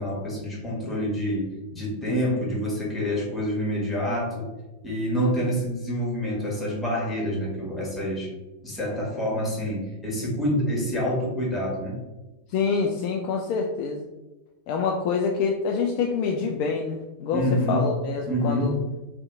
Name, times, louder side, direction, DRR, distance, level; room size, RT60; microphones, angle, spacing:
voice 1, 0.0-4.5 4.8-8.3 8.6-12.0 17.3-17.9 18.3-18.8, equal, 15° left, -4 dB, 1.2 m, -27 dB
voice 2, 12.5-14.0 14.7-17.4 17.7-18.7, left 5 dB, 45° left, 1 dB, 0.3 m, -26 dB
2.7 x 2.5 x 3.6 m, 1.1 s
figure-of-eight pair, 90°, 0 cm